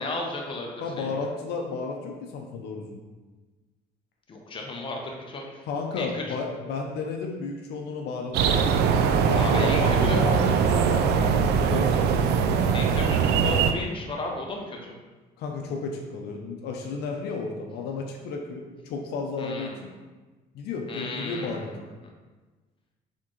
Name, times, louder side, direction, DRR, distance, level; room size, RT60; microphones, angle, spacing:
voice 1, 0.0-1.2 4.3-5.6 6.0-6.2 9.3-10.2 12.7-14.8 19.4-19.8 20.9-21.8, left 2 dB, 30° left, 0 dB, 0.8 m, -34 dB
voice 2, 0.8-3.0 5.7-9.0 9.3-12.6 15.4-19.7 20.5-21.7, left 4 dB, 75° left, 1 dB, 0.6 m, -32 dB
sound 1, 8.3-13.7, right 6 dB, 80° right, 0.4 m, -22 dB
4.3 x 3.6 x 3.1 m, 1.3 s
cardioid pair, 110°, 17 cm